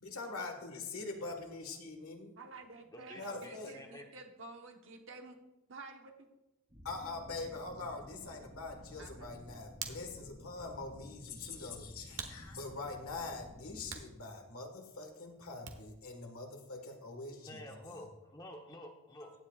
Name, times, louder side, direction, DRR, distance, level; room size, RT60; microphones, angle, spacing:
voice 1, 0.0-2.3 3.2-3.7 6.8-17.8, left 3 dB, 85° left, 3 dB, 1.6 m, -43 dB
voice 2, 2.4-5.4 5.7-6.3 9.0-9.4, right 3 dB, 60° right, 3 dB, 1.2 m, -51 dB
voice 3, 2.9-4.1 17.4-19.3, left 1 dB, 20° left, 3 dB, 0.9 m, -50 dB
sound 1, 6.7-13.9, left 1 dB, 25° right, 3.4 m, -53 dB
Hands, 9.2-16.1, right 7 dB, 80° right, 1.2 m, -51 dB
16.0 x 9.6 x 2.4 m, 0.98 s
head